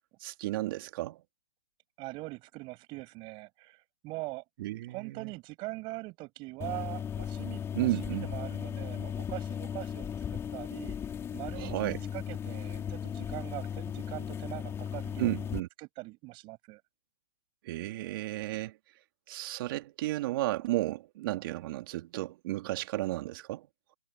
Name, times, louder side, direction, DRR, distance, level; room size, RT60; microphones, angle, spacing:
voice 1, 0.2-1.2 4.6-5.3 7.7-8.3 11.5-12.0 15.2-15.7 17.6-18.7 19.3-23.7, right 17 dB, 50° right, 3.0 m, -33 dB
voice 2, 2.0-4.4 4.9-15.4 15.8-16.8, right 23 dB, 35° right, 6.6 m, -42 dB
sound 1, 6.6-15.6, left 8 dB, 15° left, 2.8 m, -36 dB
hypercardioid pair, 130°, 15 cm